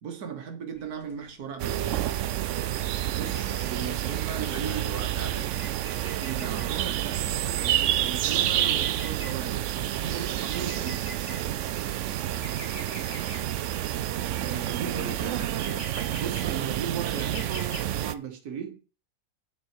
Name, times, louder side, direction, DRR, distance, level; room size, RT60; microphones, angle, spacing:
voice 1, 0.0-2.0 3.1-4.9 6.2-11.0 14.4-15.4 16.1-18.8, right 7 dB, 85° right, 1.7 m, -37 dB
sound 1, 0.7-17.8, left 2 dB, 45° left, 1.8 m, -48 dB
sound 2, 1.6-18.1, right 12 dB, 65° right, 0.8 m, -29 dB
voice 2, 3.2-3.6 4.3-5.6 14.9-15.8, right 1 dB, 10° right, 3.8 m, -40 dB
8.7 x 6.7 x 4.5 m
omnidirectional pair, 1.6 m